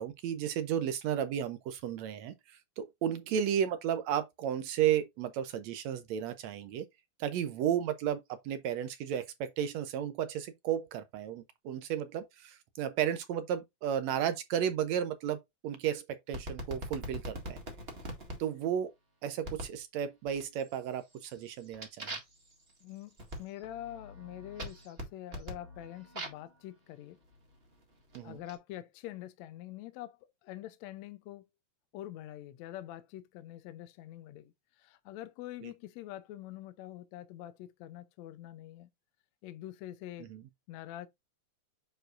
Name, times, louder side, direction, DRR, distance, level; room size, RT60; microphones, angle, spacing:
voice 1, 0.0-6.9 7.2-15.4 15.6-17.6 18.4-18.9 19.2-22.1 28.2-28.4 35.6-35.7 40.3-40.4, right 9 dB, 75° right, 1.9 m, -33 dB
sound 1, 16.3-18.4 19.4-19.8 20.3-20.7 21.1-26.5 27.3-28.5, equal, 25° right, 1.7 m, -43 dB
voice 2, 23.4-27.2 28.2-31.5 31.9-38.9 39.4-40.3 40.7-41.1, left 13 dB, 75° left, 1.9 m, -45 dB
9.0 x 4.7 x 2.5 m
omnidirectional pair, 3.4 m